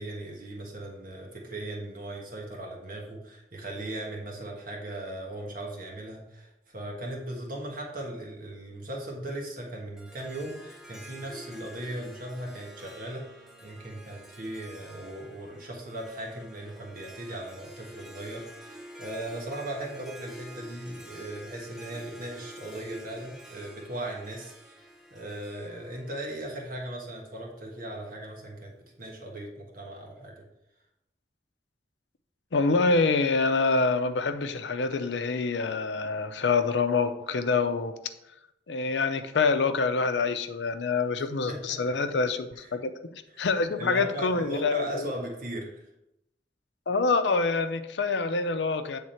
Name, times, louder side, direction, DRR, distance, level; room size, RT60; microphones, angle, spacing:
voice 1, 0.0-13.3 13.6-24.8 25.1-28.7 29.0-30.3 41.5-41.6 41.8-41.9 43.3-45.8, right 1 dB, 55° right, -1 dB, 1.4 m, -38 dB
Harp, 10.0-27.2, equal, 5° right, 0.8 m, -48 dB
voice 2, 32.5-38.0 38.7-42.9 43.4-45.1 46.9-49.0, left 4 dB, 90° left, 8 dB, 0.6 m, -26 dB
8.8 x 3.6 x 4.3 m, 0.86 s
head